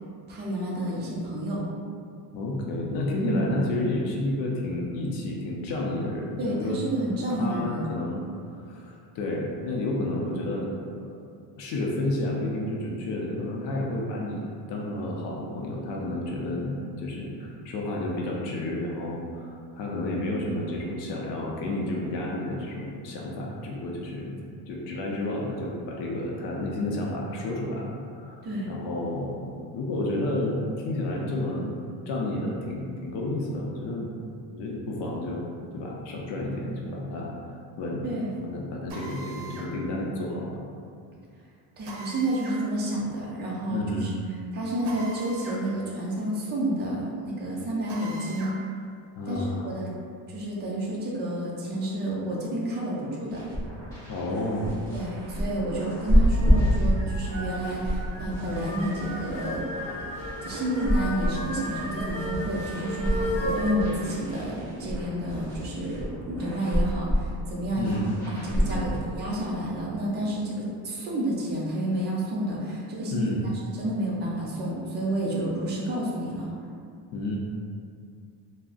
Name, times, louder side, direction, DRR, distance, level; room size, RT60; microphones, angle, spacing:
voice 1, 0.3-1.6 3.2-3.4 6.4-7.9 28.4-28.7 38.0-38.3 41.8-44.1 44.5-48.5 49.3-49.9 50.3-53.4 54.9-59.6 60.4-73.2 73.8-76.5, right 1 dB, 25° right, -5 dB, 0.4 m, -30 dB
voice 2, 2.3-6.8 7.4-8.2 8.5-10.7 11.0-24.4 24.7-30.6 30.8-31.8 32.1-34.3 34.5-35.4 35.7-37.3 37.8-38.0 38.4-40.6 43.7-44.1 49.1-49.7 54.1-54.8 67.8-68.2 68.6-69.0 73.1-73.4 77.1-77.4, left 1 dB, 70° left, -2 dB, 0.6 m, -31 dB
Drill, 38.9-39.7 41.8-42.6 44.8-45.6 46.0-46.1 47.9-48.6, right 2 dB, 65° right, 0.7 m, -41 dB
sound 1, 53.3-69.0, equal, 10° left, 1.3 m, -29 dB
sound 2, 56.2-63.7, left 1 dB, 30° left, 1.1 m, -35 dB
3.6 x 2.1 x 2.4 m, 2.3 s
cardioid pair, 170°, 44 cm